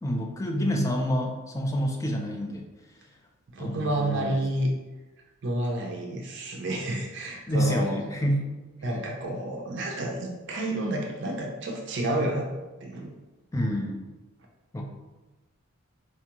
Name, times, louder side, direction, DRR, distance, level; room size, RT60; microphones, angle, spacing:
voice 1, 0.0-2.7 3.6-4.4 7.5-8.4 13.5-14.1 14.7-14.8, equal, 15° left, 1 dB, 0.3 m, -28 dB
voice 2, 3.5-4.7 5.4-7.9 8.8-12.5 12.8-13.1, right 1 dB, 55° right, 0 dB, 0.5 m, -30 dB
4.3 x 2.3 x 2.9 m, 1.2 s
head